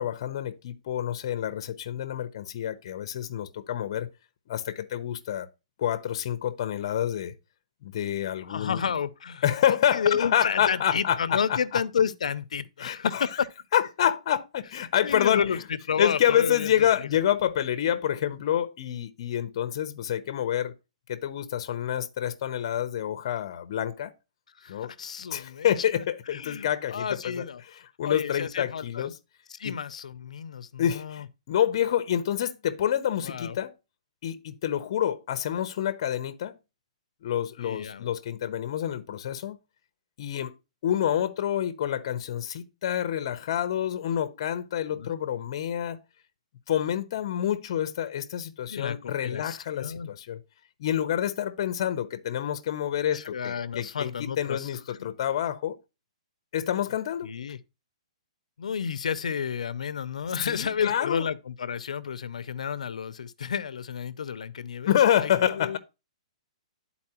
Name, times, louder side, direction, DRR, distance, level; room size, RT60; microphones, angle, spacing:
voice 1, 0.0-4.1 4.5-5.5 5.8-7.3 7.8-8.8 9.4-11.4 12.8-13.3 13.7-15.4 16.0-20.7 21.1-24.1 24.7-24.9 25.3-27.4 28.0-29.1 29.6-29.8 30.8-33.7 34.2-36.5 37.2-39.6 40.2-40.5 40.8-46.0 46.7-50.4 50.8-55.8 56.5-57.3 60.4-61.3 64.9-65.8, left 10 dB, 45° left, 0.6 m, -27 dB
voice 2, 8.4-13.1 15.0-17.1 24.6-25.7 26.3-27.6 28.0-29.1 29.5-31.3 33.2-33.6 37.6-38.1 44.9-45.1 48.7-50.1 53.1-55.1 57.2-57.6 58.6-65.8, left 7 dB, 85° left, 0.5 m, -31 dB
11.0 x 4.1 x 2.8 m
hypercardioid pair, 165°, 4 cm